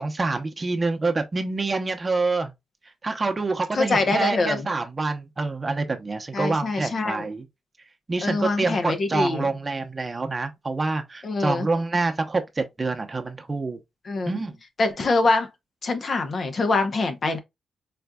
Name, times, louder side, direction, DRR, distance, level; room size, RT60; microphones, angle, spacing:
voice 1, 0.0-2.5 3.0-7.5 8.1-13.8 14.3-14.6, right 3 dB, 30° right, 0.8 m, -26 dB
voice 2, 3.7-4.7 6.3-7.3 8.2-9.5 11.2-11.7 14.1-14.4 14.8-15.5 15.8-17.4, left 3 dB, 50° left, 0.8 m, -24 dB
4.2 x 2.5 x 2.3 m
cardioid pair, 65°, 0 cm